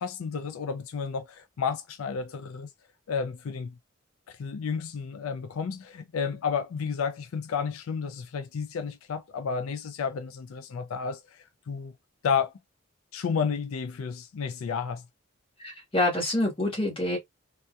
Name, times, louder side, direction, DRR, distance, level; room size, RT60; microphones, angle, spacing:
voice 1, 0.0-2.7 3.1-3.8 4.3-11.9 12.2-12.5 13.1-15.1, left 6 dB, 85° left, 0.4 m, -31 dB
voice 2, 15.6-17.2, left 1 dB, 25° left, 1.4 m, -26 dB
3.3 x 2.8 x 2.3 m
head